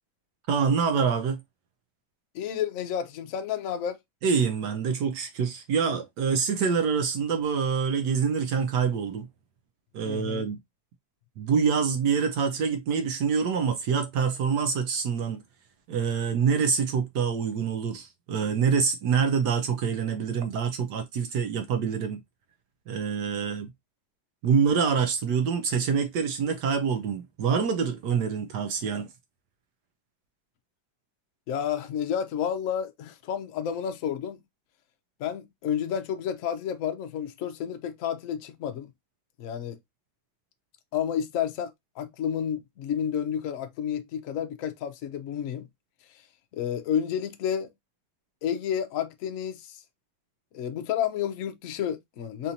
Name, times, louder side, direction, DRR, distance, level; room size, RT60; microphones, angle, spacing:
voice 1, 0.5-1.4 4.2-9.3 9.9-10.6 11.4-15.4 15.9-22.2 22.9-23.7 24.4-29.1, right 6 dB, 70° right, 1.1 m, -26 dB
voice 2, 2.3-4.0 10.0-10.4 31.5-34.4 35.2-38.9 39.4-39.8 40.9-45.7 46.5-47.7 48.4-49.8 50.5-52.5, left 9 dB, 65° left, 0.8 m, -30 dB
4.2 x 2.6 x 2.7 m
omnidirectional pair, 2.1 m